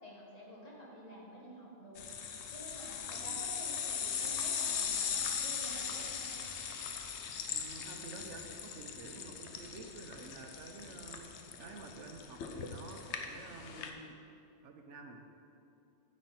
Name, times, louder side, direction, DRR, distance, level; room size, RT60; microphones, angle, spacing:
voice 1, 0.0-2.1 2.5-6.3, equal, 35° left, -5 dB, 1.7 m, -50 dB
sound 1, 2.0-13.9, left 7 dB, 70° left, 0.9 m, -39 dB
voice 2, 7.5-14.2 14.6-15.2, right 3 dB, 75° right, 3 dB, 1.1 m, -50 dB
9.5 x 6.3 x 4.3 m, 2.6 s
omnidirectional pair, 1.3 m